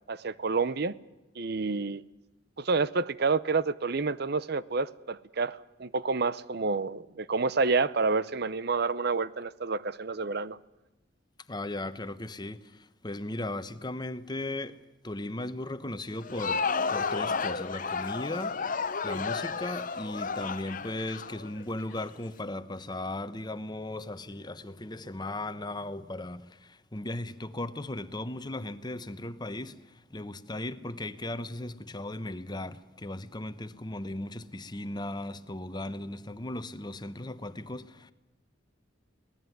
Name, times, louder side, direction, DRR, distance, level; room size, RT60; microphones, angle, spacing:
voice 1, 0.1-0.9 1.4-2.0 2.6-10.6, right 4 dB, 60° right, 0.8 m, -29 dB
voice 2, 11.5-14.8 15.0-16.6 16.9-18.7 19.0-38.1, left 1 dB, 25° left, 1.1 m, -37 dB
Crowd, 16.1-22.0, left 5 dB, 45° left, 1.0 m, -32 dB
24.0 x 18.0 x 9.4 m
head